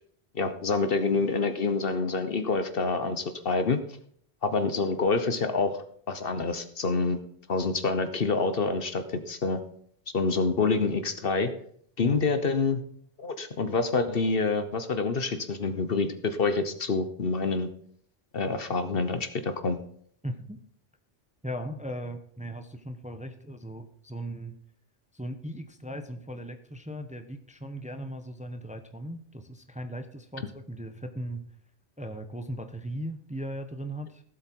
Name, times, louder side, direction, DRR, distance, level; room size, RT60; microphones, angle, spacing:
voice 1, 0.3-3.8 4.4-5.8 6.1-7.2 7.5-9.6 10.1-11.5 12.0-12.8 13.2-17.7 18.3-19.8, left 4 dB, 55° left, 10 dB, 1.1 m, -27 dB
voice 2, 20.2-20.6 21.4-24.5 25.1-31.4 32.0-34.2, right 1 dB, 5° right, 8 dB, 0.9 m, -38 dB
16.5 x 8.0 x 4.6 m, 0.63 s
omnidirectional pair, 1.2 m